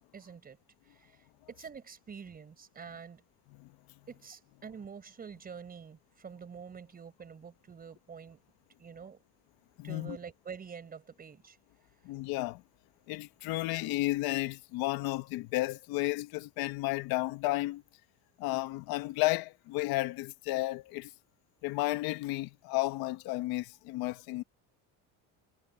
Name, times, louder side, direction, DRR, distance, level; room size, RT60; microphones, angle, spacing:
voice 1, 0.1-0.6 0.8-1.2 1.5-3.2 4.1-8.4 8.8-9.2 9.8-11.6, right 6 dB, 25° right, 4.8 m, -47 dB
voice 2, 9.8-10.2 12.0-12.6 13.1-17.8 18.4-21.1 21.6-24.4, left 19 dB, 75° left, 1.3 m, -32 dB
cardioid pair, 160°, 36 cm